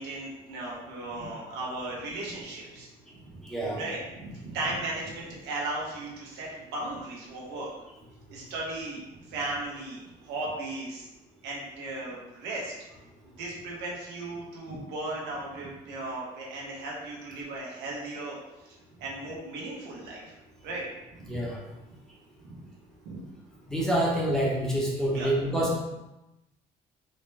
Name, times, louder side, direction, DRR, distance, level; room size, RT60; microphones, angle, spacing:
voice 1, 0.0-2.9 3.3-3.4 3.7-7.7 8.3-11.1 11.4-12.7 13.4-18.4 19.0-20.3 20.6-20.9 21.1-21.4 22.4-22.6 23.0-23.2 25.1-25.3, right 2 dB, 90° right, -4 dB, 1.1 m, -36 dB
voice 2, 3.4-3.8 21.3-21.6 23.7-25.8, right 1 dB, 5° left, -5 dB, 0.9 m, -27 dB
4.0 x 2.1 x 3.3 m, 0.96 s
cardioid pair, 110°, 17 cm